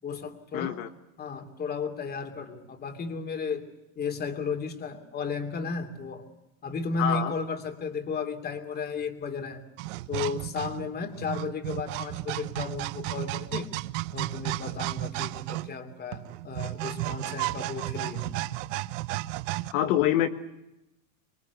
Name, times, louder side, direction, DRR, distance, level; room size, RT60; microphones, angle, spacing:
voice 1, 0.0-0.8 1.2-3.6 4.0-6.2 6.6-9.6 10.1-13.7 14.1-18.3 19.8-20.0, left 5 dB, 20° left, 7 dB, 2.8 m, -34 dB
voice 2, 0.5-0.9 7.0-7.3 19.7-20.3, left 11 dB, 65° left, 8 dB, 1.6 m, -25 dB
sound 1, 9.8-19.7, right 18 dB, 55° right, 0.8 m, -33 dB
25.5 x 23.0 x 8.2 m, 0.90 s
supercardioid pair, 150°, 45 cm